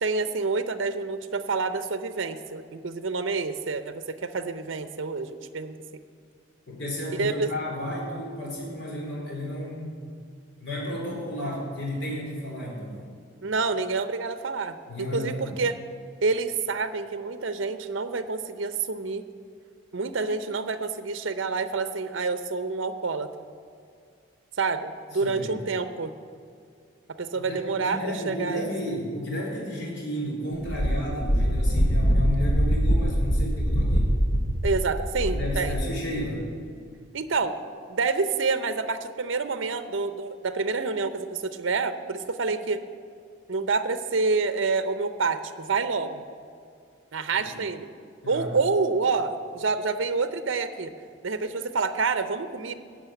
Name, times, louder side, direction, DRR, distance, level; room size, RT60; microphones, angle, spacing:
voice 1, 0.0-5.8 7.2-7.5 13.4-15.8 16.2-19.3 19.9-23.3 24.6-26.1 27.2-28.7 34.6-35.8 37.1-37.5 37.9-42.8 43.5-46.2 47.1-47.9 48.3-50.9 51.2-52.7, right 4 dB, 70° right, 10 dB, 0.6 m, -28 dB
voice 2, 6.7-10.0 10.6-13.0 14.9-15.6 25.1-25.6 27.5-34.1 35.2-36.4 47.3-47.6 48.2-48.5, left 1 dB, 65° left, -3 dB, 4.1 m, -32 dB
Wind, 30.6-36.0, equal, 45° left, 1.0 m, -23 dB
14.0 x 6.2 x 9.1 m, 2.3 s
head